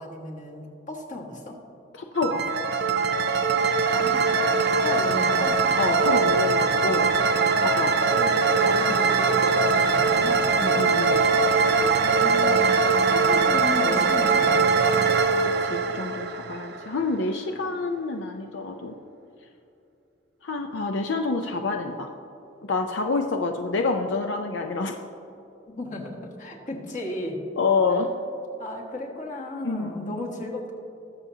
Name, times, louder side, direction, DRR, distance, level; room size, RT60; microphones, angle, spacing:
voice 1, 0.0-1.6 3.9-4.3 4.8-5.6 8.1-10.5 11.9-12.6 13.0-15.0 25.7-27.4 28.0-28.1 28.6-30.7, left 1 dB, 45° left, -1 dB, 1.6 m, -34 dB
voice 2, 1.9-2.4 5.8-7.1 7.6-8.1 10.6-11.2 15.6-18.9 20.4-22.1 22.6-25.0 27.6-28.1 29.6-30.2, left 3 dB, 80° left, 4 dB, 0.5 m, -27 dB
sound 1, 2.2-17.0, right 4 dB, 60° right, 0.5 m, -21 dB
20.5 x 6.9 x 2.8 m, 2.8 s
head